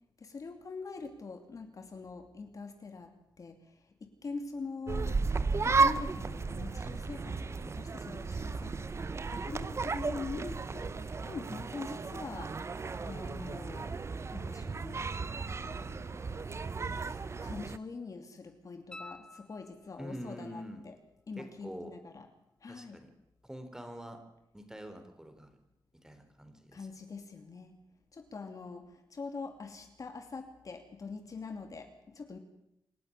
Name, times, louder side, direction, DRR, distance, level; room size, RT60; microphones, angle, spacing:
voice 1, 0.2-3.7 4.0-5.2 5.5-14.0 14.3-15.1 15.6-21.0 21.3-22.3 22.6-23.0 26.7-27.7 28.1-32.4, left 4 dB, 45° left, 6 dB, 2.6 m, -44 dB
sound 1, 4.9-17.8, right 4 dB, 35° right, 0.9 m, -34 dB
sound 2, 18.9-20.2 23.0-23.1, left 2 dB, 10° left, 0.8 m, -50 dB
voice 2, 20.0-20.8 21.4-21.9 22.7-23.1 23.4-24.2 24.5-25.5 26.0-26.9, equal, 5° right, 7 dB, 3.9 m, -45 dB
27.5 x 12.0 x 10.0 m, 0.84 s
wide cardioid pair, 120°, 8 cm